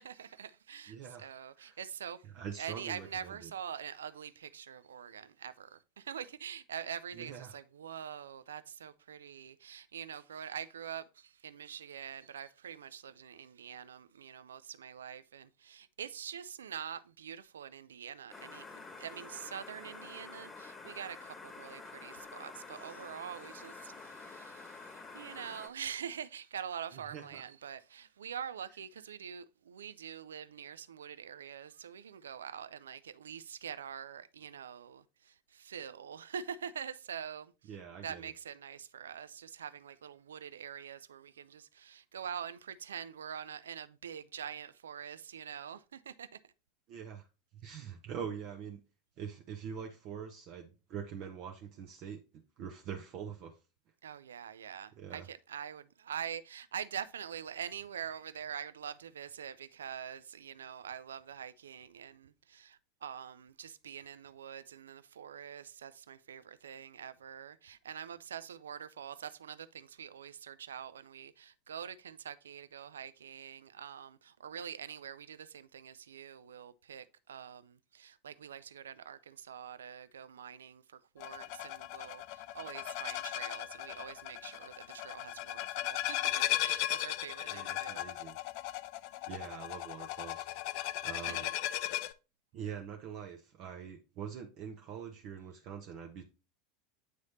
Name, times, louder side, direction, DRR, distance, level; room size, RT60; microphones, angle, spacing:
voice 1, 0.0-2.2 2.6-37.5 38.0-46.5 54.0-88.1 91.3-91.5, right 8 dB, 75° right, 0.4 m, -45 dB
voice 2, 0.9-1.3 1.6-1.8 2.3-3.5 7.1-7.6 26.9-27.4 37.7-38.3 46.9-47.3 47.5-48.8 49.2-52.2 52.6-53.6 54.9-55.3 87.5-88.4 89.3-90.5 91.0-91.5 92.5-96.2, right 7 dB, 50° right, 0.8 m, -44 dB
sound 1, 18.3-25.7, left 3 dB, 20° left, 1.1 m, -49 dB
sound 2, 81.2-92.1, left 14 dB, 55° left, 0.4 m, -37 dB
8.2 x 3.2 x 4.0 m
figure-of-eight pair, 85°, 0 cm